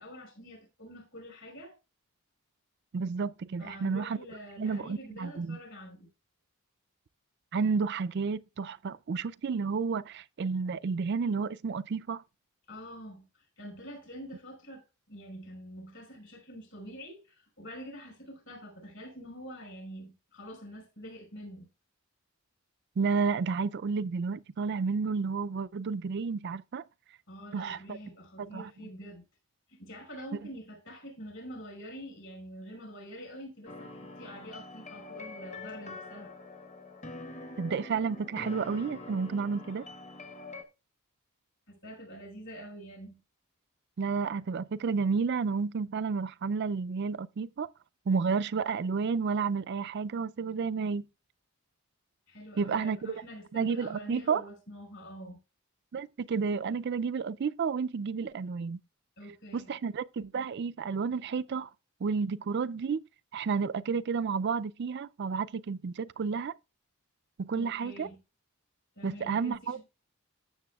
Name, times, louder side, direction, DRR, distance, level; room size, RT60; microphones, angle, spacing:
voice 1, 0.0-1.7 3.6-6.1 12.7-21.7 27.3-29.2 29.7-36.3 41.7-43.2 52.3-55.4 59.2-59.8 67.5-68.2 68.9-69.8, equal, 55° left, 4.9 m, -46 dB
voice 2, 2.9-4.2 4.6-5.6 7.5-12.2 23.0-26.8 27.5-28.0 28.4-28.7 37.6-39.9 44.0-47.7 48.1-51.0 52.6-53.1 53.5-54.4 55.9-58.8 59.5-61.7 62.0-63.0 63.3-66.5 67.4-68.1 69.0-69.8, right 5 dB, 50° right, 0.4 m, -31 dB
sound 1, 33.7-40.6, left 2 dB, 30° left, 1.0 m, -45 dB
14.5 x 6.8 x 2.3 m
head